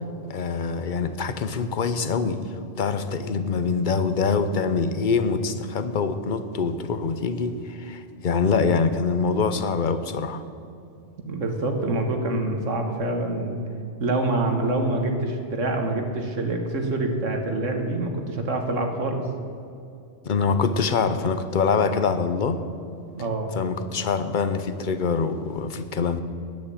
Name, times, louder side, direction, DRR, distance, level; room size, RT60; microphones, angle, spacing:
voice 1, 0.3-2.4 2.8-10.4 20.3-22.6 23.6-26.2, left 5 dB, 45° left, 11 dB, 0.8 m, -24 dB
voice 2, 11.3-13.6 14.0-19.2 23.2-23.5, right 2 dB, 80° right, 4 dB, 1.8 m, -26 dB
10.5 x 9.6 x 8.6 m, 2.6 s
omnidirectional pair, 1.3 m